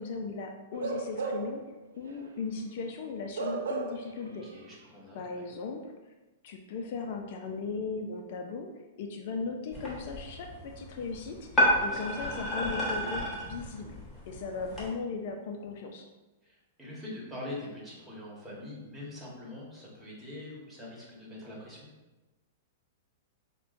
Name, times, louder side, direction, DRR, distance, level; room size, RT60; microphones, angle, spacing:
voice 1, 0.0-1.6 2.0-4.5 5.1-5.9 6.4-8.7 9.0-14.0 14.3-16.1, left 4 dB, 60° left, 3 dB, 0.4 m, -37 dB
Bark / Livestock farm animals working animals, 0.7-1.6 2.0-2.2 3.3-4.2 4.5-4.6, right 4 dB, 85° right, 0.5 m, -34 dB
voice 2, 4.2-5.5 11.6-12.1 16.4-21.9, left 1 dB, 10° right, -5 dB, 1.3 m, -44 dB
sound 1, 9.7-14.9, left 1 dB, 15° left, 1.3 m, -31 dB
5.8 x 2.2 x 2.5 m, 1.1 s
hypercardioid pair, 125°, 0 cm